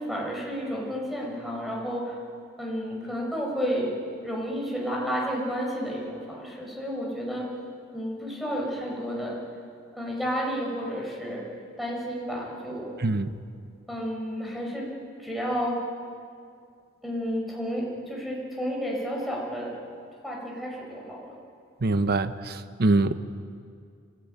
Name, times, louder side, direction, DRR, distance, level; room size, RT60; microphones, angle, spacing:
voice 1, 0.0-2.2 2.6-3.9 4.2-7.5 7.9-9.4 9.9-11.4 11.8-12.9 13.9-14.9 15.2-15.8 17.0-19.8 20.2-21.4, equal, ahead, -2 dB, 5.2 m, -31 dB
voice 2, 21.8-23.1, right 2 dB, 50° right, 11 dB, 0.9 m, -24 dB
25.0 x 14.5 x 9.0 m, 2.3 s
head